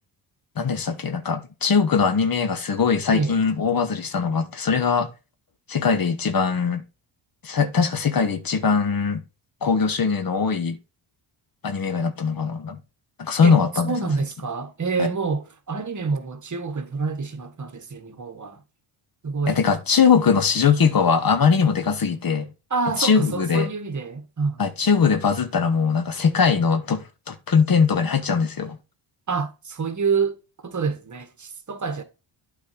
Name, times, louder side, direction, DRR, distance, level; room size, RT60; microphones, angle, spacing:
voice 1, 0.6-5.1 5.7-6.8 7.4-9.2 9.6-10.8 11.6-12.8 13.2-13.9 15.0-15.1 19.5-22.5 23.0-23.7 24.6-28.8, left 5 dB, 45° left, 1.2 m, -21 dB
voice 2, 3.1-3.4 13.4-13.6 13.8-18.6 19.2-19.6 22.7-24.6 29.3-32.0, right 4 dB, 35° right, 1.5 m, -27 dB
8.5 x 4.4 x 4.6 m
cardioid pair, 75°, 50 cm